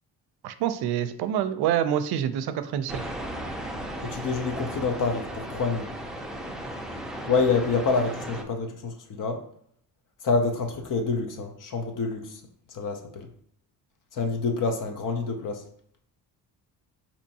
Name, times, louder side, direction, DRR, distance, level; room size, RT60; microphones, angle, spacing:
voice 1, 0.4-3.0, right 10 dB, 70° right, 11 dB, 0.5 m, -26 dB
sound 1, 2.9-8.4, right 1 dB, ahead, 0.5 m, -36 dB
voice 2, 4.0-5.9 7.3-9.4 10.2-12.4 12.7-13.3 14.1-15.6, left 4 dB, 50° left, 4 dB, 0.8 m, -27 dB
4.3 x 2.9 x 2.7 m, 0.64 s
cardioid pair, 90°, 41 cm